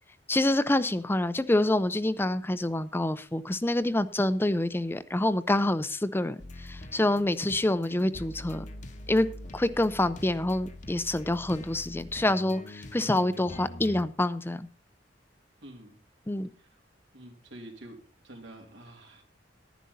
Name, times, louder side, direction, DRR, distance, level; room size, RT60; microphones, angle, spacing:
voice 1, 0.3-6.4 6.7-8.6 9.1-9.3 9.5-14.7 16.3-16.5, left 1 dB, 15° left, 13 dB, 0.5 m, -27 dB
sound 1, 6.4-14.0, left 1 dB, 45° left, 1.0 m, -44 dB
voice 2, 15.6-16.0 16.6-16.7 17.1-19.2, right 1 dB, 90° right, 1 dB, 3.3 m, -47 dB
11.5 x 10.5 x 4.0 m, 0.39 s
head